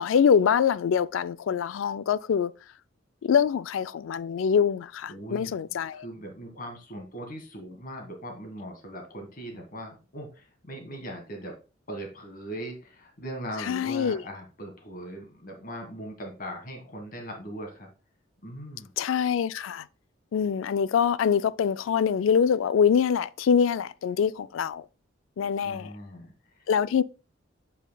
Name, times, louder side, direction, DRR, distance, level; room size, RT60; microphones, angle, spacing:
voice 1, 0.0-2.5 3.2-6.1 13.6-14.2 19.0-19.9 20.3-24.8 25.4-25.9 26.7-27.0, left 7 dB, 85° left, 0.3 m, -24 dB
voice 2, 5.1-5.5 5.9-11.6 11.9-17.9 18.4-18.9 25.6-26.3, right 1 dB, 45° left, 1.6 m, -40 dB
8.1 x 5.6 x 2.3 m
head